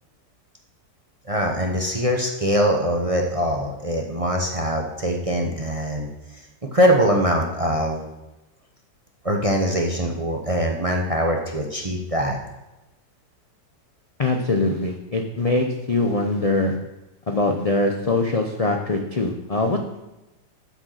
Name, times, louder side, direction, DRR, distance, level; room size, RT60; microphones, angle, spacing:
voice 1, 1.2-6.1 6.3-6.4 6.7-8.0 9.2-12.4, equal, 30° right, 1 dB, 0.6 m, -22 dB
voice 2, 14.2-16.7 17.3-20.0, left 2 dB, 55° left, 3 dB, 0.4 m, -22 dB
8.0 x 6.5 x 6.4 m, 1.0 s
omnidirectional pair, 1.8 m